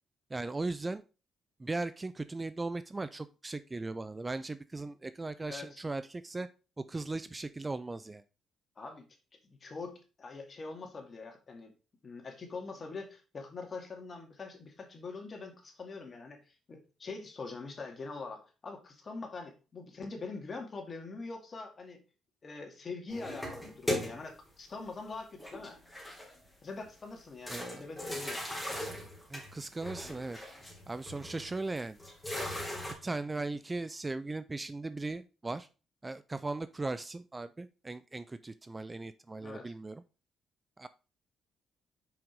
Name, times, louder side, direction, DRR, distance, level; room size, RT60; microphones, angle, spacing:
voice 1, 0.3-1.0 1.6-6.5 6.9-8.2 27.5-27.8 29.3-30.4 30.9-32.0 33.0-35.7 36.0-40.0 40.8-40.9, right 3 dB, 20° right, 13 dB, 0.4 m, -38 dB
voice 2, 5.5-5.8 8.8-9.0 9.4-11.7 12.0-22.0 22.4-25.8 26.6-28.4 39.4-39.7, left 3 dB, 40° left, 3 dB, 2.3 m, -43 dB
sound 1, 23.1-24.5 25.4-26.5 26.8-26.9 27.5-32.9, left 1 dB, 5° left, 3.2 m, -39 dB
6.2 x 5.1 x 4.7 m, 0.32 s
cardioid pair, 90°, 0 cm